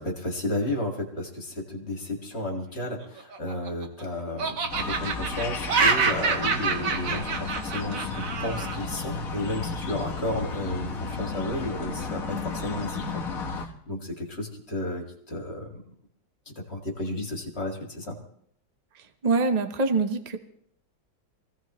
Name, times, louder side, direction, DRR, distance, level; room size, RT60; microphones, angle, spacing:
voice 1, 0.0-15.8 16.7-18.2, left 1 dB, 35° left, 1 dB, 2.3 m, -33 dB
Laughter, 3.2-4.0 4.4-8.8, right 4 dB, 50° right, 1.3 m, -27 dB
sound 1, 4.7-13.7, left 4 dB, 50° left, 1.6 m, -33 dB
voice 2, 19.2-20.4, right 3 dB, 35° right, 8 dB, 0.7 m, -24 dB
24.0 x 16.5 x 3.1 m, 0.67 s
omnidirectional pair, 2.1 m